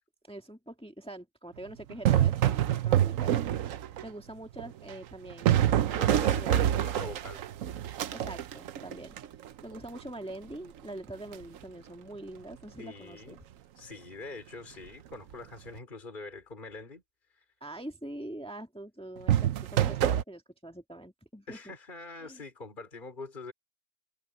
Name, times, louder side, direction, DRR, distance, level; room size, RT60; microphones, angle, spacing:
voice 1, 0.3-3.4 4.0-6.7 8.1-9.2 9.6-13.4 17.6-21.6 22.2-22.4, right 1 dB, 5° left, 1.6 m, -44 dB
sound 1, 1.9-4.1 4.6-9.6 11.3-11.6 19.3-20.2, right 11 dB, 60° right, 0.9 m, -26 dB
voice 2, 6.0-7.4 12.8-13.4 13.8-17.0 17.3-17.4 21.5-23.5, left 3 dB, 25° left, 4.0 m, -44 dB
omnidirectional pair, 1.9 m